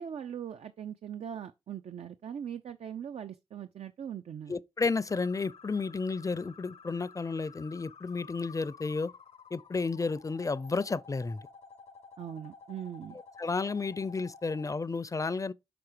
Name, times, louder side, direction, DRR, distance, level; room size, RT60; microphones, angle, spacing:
voice 1, 0.0-4.6 12.2-13.2, right 8 dB, 75° right, 0.5 m, -40 dB
voice 2, 4.5-9.1 9.5-11.4 13.4-15.5, left 4 dB, 30° left, 0.5 m, -32 dB
sound 1, 5.1-14.7, left 5 dB, 70° left, 0.7 m, -52 dB
5.9 x 3.8 x 4.9 m
cardioid pair, 45°, 11 cm